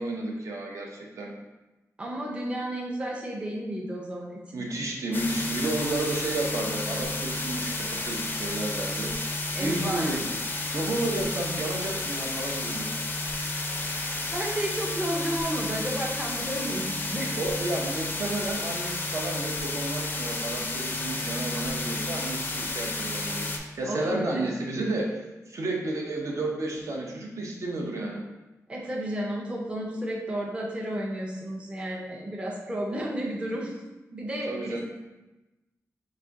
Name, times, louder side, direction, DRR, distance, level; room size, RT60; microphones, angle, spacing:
voice 1, 0.0-1.3 4.5-9.1 9.6-10.3 10.7-12.9 17.3-28.2 34.5-34.8, right 2 dB, 60° right, -1 dB, 0.6 m, -32 dB
voice 2, 2.0-4.6 9.5-10.2 14.1-17.4 23.8-24.4 28.7-33.8 34.1-34.8, right 1 dB, 20° right, -2 dB, 0.5 m, -32 dB
sound 1, 5.1-23.6, left 2 dB, 35° left, 0.4 m, -31 dB
4.1 x 2.5 x 3.6 m, 1.1 s
wide cardioid pair, 155°, 6 cm